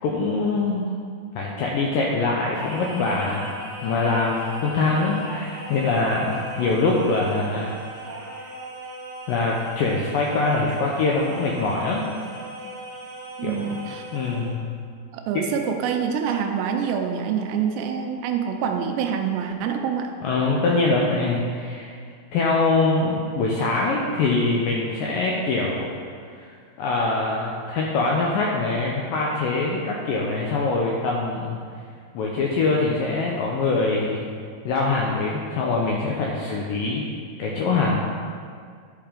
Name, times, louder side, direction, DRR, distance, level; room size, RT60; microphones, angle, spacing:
voice 1, 0.0-0.9 1.4-3.5 3.8-7.7 9.3-12.0 13.4-13.8 14.1-14.7 20.2-22.0 22.3-25.9 26.3-26.5 26.8-31.6 32.1-34.3 34.7-37.0 37.4-38.0, left 3 dB, 90° left, -2 dB, 1.9 m, -23 dB
Singing, 2.5-14.6, right 1 dB, 35° right, 1.1 m, -38 dB
voice 2, 13.4-14.0 15.1-20.1, right 7 dB, 85° right, 4 dB, 2.7 m, -26 dB
10.5 x 5.5 x 5.1 m, 2.1 s
omnidirectional pair, 5.0 m